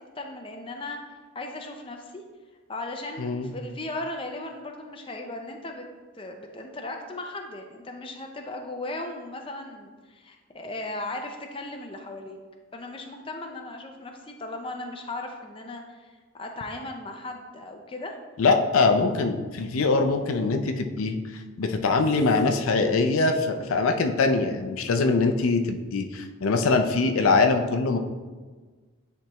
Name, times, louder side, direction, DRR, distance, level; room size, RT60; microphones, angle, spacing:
voice 1, 0.2-1.0 1.3-2.2 2.7-5.8 6.1-12.4 12.7-18.2, left 2 dB, 25° left, 3 dB, 0.5 m, -37 dB
voice 2, 3.2-3.5 18.4-28.0, left 3 dB, 85° left, 6 dB, 0.5 m, -23 dB
10.0 x 3.4 x 3.0 m, 1.4 s
head